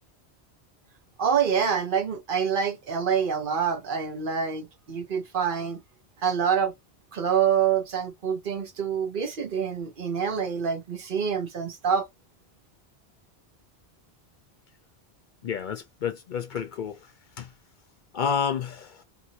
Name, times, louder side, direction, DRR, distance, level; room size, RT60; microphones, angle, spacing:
voice 1, 1.2-5.8 6.2-6.7 7.1-12.1, right 7 dB, 60° right, 0.9 m, -26 dB
voice 2, 15.4-17.0 17.4-17.5 18.1-19.0, left 7 dB, 60° left, 0.6 m, -29 dB
2.8 x 2.5 x 2.8 m
omnidirectional pair, 1.1 m